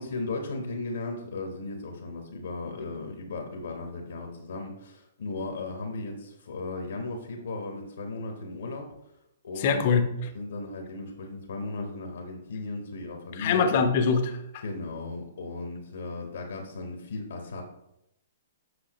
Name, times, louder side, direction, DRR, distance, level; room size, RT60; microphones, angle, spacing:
voice 1, 0.0-8.9 9.4-9.8 10.3-13.9 14.6-17.6, left 3 dB, 75° left, 3 dB, 1.2 m, -36 dB
voice 2, 9.6-10.3 13.4-14.6, left 5 dB, 50° left, 7 dB, 0.9 m, -24 dB
7.9 x 5.8 x 3.1 m, 0.83 s
hypercardioid pair, 130°, 0 cm